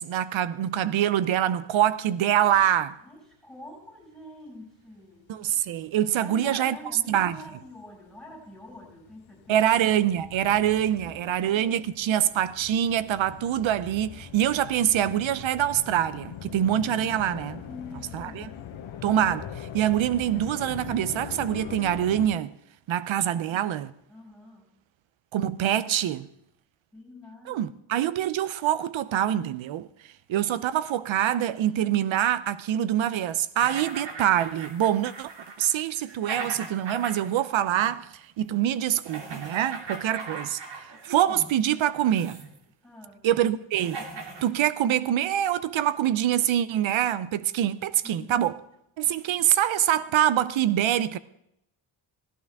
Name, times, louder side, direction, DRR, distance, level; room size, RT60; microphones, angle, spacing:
voice 1, 0.0-3.0 5.3-6.8 7.1-7.4 9.5-17.6 18.1-18.5 19.0-22.5 22.9-23.9 25.3-26.3 27.5-29.9 30.3-35.3 35.6-38.1 38.4-42.4 43.2-44.0 44.4-48.5 49.0-51.2, right 11 dB, 85° right, 0.7 m, -25 dB
voice 2, 3.0-5.3 6.2-9.7 11.0-12.3 17.7-18.5 23.2-24.7 26.9-27.7 42.8-43.3 48.0-48.5, left 1 dB, ahead, 6.0 m, -46 dB
sound 1, 5.7-6.0 6.6-22.3, left 9 dB, 85° left, 1.1 m, -42 dB
sound 2, 33.6-37.5 37.8-37.9 39.0-41.5 42.0-42.6 43.3-43.4 43.7-44.5, right 4 dB, 65° right, 2.7 m, -39 dB
16.5 x 14.5 x 3.5 m
wide cardioid pair, 140°, 46 cm